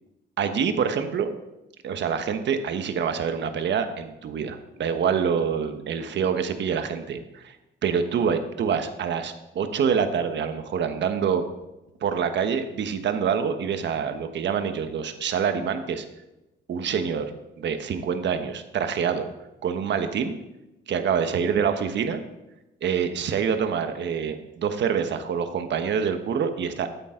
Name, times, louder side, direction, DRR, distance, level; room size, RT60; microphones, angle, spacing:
voice 1, 0.4-1.3 1.8-7.6 7.8-11.5 12.0-16.0 16.7-17.3 17.6-19.2 19.6-20.4 20.9-22.2 22.8-26.9, right 7 dB, 65° right, 8 dB, 1.2 m, -26 dB
13.5 x 8.9 x 3.8 m, 0.98 s
cardioid pair, 90°, 20 cm